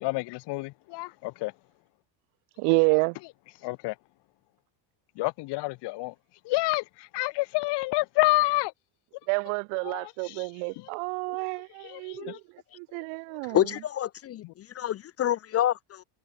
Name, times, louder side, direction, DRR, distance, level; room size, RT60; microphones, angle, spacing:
voice 1, 0.0-1.5 3.6-3.9 5.2-6.1 6.4-6.8 7.1-8.7 9.9-10.0 11.9-12.4, left 21 dB, 55° left, 1.1 m, -28 dB
voice 2, 2.6-3.2 9.3-12.4 12.7-13.7, right 40 dB or more, 70° right, 2.4 m, -28 dB
voice 3, 13.5-16.0, left 11 dB, 30° left, 0.6 m, -27 dB
supercardioid pair, 125°, 50 cm